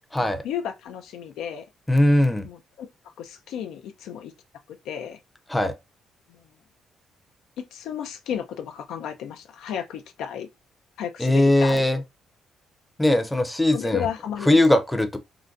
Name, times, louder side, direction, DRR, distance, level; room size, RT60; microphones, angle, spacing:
voice 1, 0.2-1.6 2.4-4.3 4.7-5.2 6.3-6.5 7.6-10.5 11.0-12.0 13.7-14.8, left 9 dB, 85° left, 0.4 m, -33 dB
voice 2, 1.9-2.5 5.5-5.8 11.2-12.0 13.0-14.1 14.5-15.2, left 1 dB, 10° left, 0.5 m, -20 dB
3.8 x 2.2 x 2.5 m
cardioid pair, 90°, 0 cm